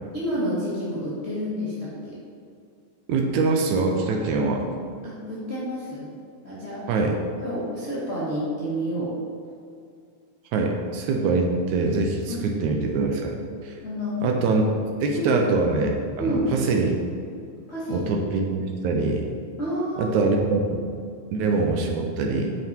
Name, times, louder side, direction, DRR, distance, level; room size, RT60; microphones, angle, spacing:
voice 1, 0.1-2.1 5.0-6.1 6.4-6.8 7.4-9.1 12.3-12.4 13.8-14.2 15.1-15.4 16.2-16.5 17.7-18.1 19.6-20.2, equal, 25° left, -10 dB, 1.4 m, -29 dB
voice 2, 3.1-4.7 6.9-7.2 10.5-13.4 13.6-13.8 14.2-14.6 15.0-17.0 17.9-19.3 20.0-20.8 21.3-22.6, right 3 dB, 80° right, 2 dB, 1.7 m, -23 dB
9.3 x 5.8 x 4.5 m, 2.4 s
omnidirectional pair, 4.1 m